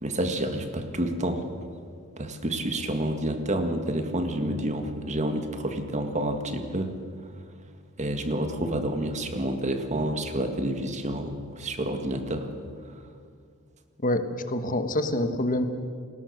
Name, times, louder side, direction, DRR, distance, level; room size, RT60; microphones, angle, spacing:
voice 1, 0.0-1.4 2.2-6.9 8.0-12.5, right 1 dB, 35° right, 6 dB, 1.9 m, -29 dB
voice 2, 14.0-15.7, left 1 dB, 40° left, 8 dB, 1.3 m, -26 dB
30.0 x 20.0 x 6.7 m, 2.1 s
head